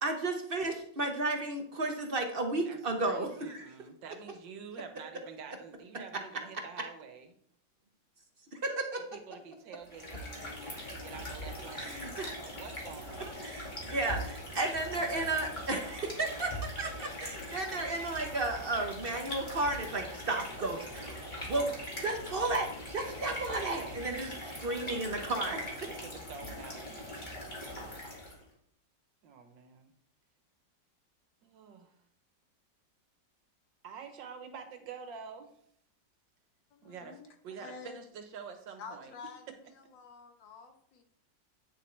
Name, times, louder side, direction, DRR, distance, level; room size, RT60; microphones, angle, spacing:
voice 1, 0.0-3.7 8.5-9.0 11.8-12.4 13.2-21.2 21.5-25.9, right 2 dB, 45° right, 4 dB, 0.8 m, -33 dB
voice 2, 2.6-7.3 9.1-13.5 23.4-24.0 25.8-26.8 29.2-29.9 31.4-31.8 33.8-35.5 36.8-39.1, right 6 dB, 90° right, 7 dB, 1.7 m, -48 dB
sound 1, 9.8-28.4, left 1 dB, 25° left, 2.2 m, -41 dB
voice 3, 36.8-37.2 37.6-38.0 38.8-39.4 39.9-41.0, left 5 dB, 85° left, 5 dB, 1.8 m, -48 dB
9.2 x 7.0 x 3.2 m, 0.67 s
omnidirectional pair, 2.0 m